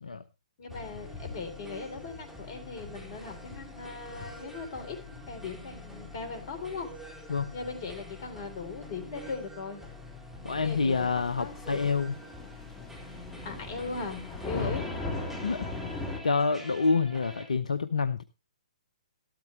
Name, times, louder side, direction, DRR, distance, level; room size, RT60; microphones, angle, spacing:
voice 1, 0.6-6.9 7.5-9.8 10.5-11.9 13.4-14.9, left 4 dB, 45° left, 7 dB, 3.4 m, -39 dB
sound 1, 0.7-17.5, left 2 dB, 5° right, 3.8 m, -46 dB
voice 2, 10.4-12.1 14.5-14.8 15.4-15.9 16.2-18.2, left 4 dB, 75° left, 12 dB, 0.8 m, -28 dB
Thunder / Rain, 10.9-16.2, left 2 dB, 15° left, 3.2 m, -38 dB
13.0 x 13.0 x 3.2 m, 0.26 s
figure-of-eight pair, 125°, 4 cm